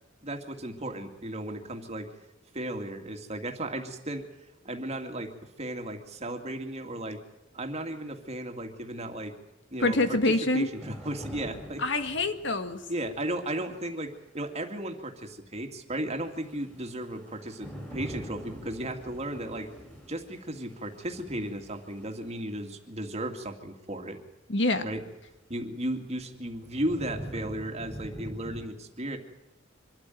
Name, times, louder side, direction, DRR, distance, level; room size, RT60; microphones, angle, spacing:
voice 1, 0.2-2.1 2.5-4.3 4.6-7.2 7.5-9.3 9.7-11.8 12.9-19.7 20.1-24.2 24.8-25.0 25.5-29.2, right 1 dB, 35° right, 5 dB, 2.4 m, -35 dB
voice 2, 9.8-10.7 11.8-12.8 24.5-24.8, left 2 dB, 70° left, 8 dB, 1.9 m, -25 dB
sound 1, 10.7-13.8 16.2-22.5 25.1-25.2 25.8-28.7, equal, 10° left, 5.4 m, -44 dB
25.0 x 13.5 x 9.3 m, 1.0 s
head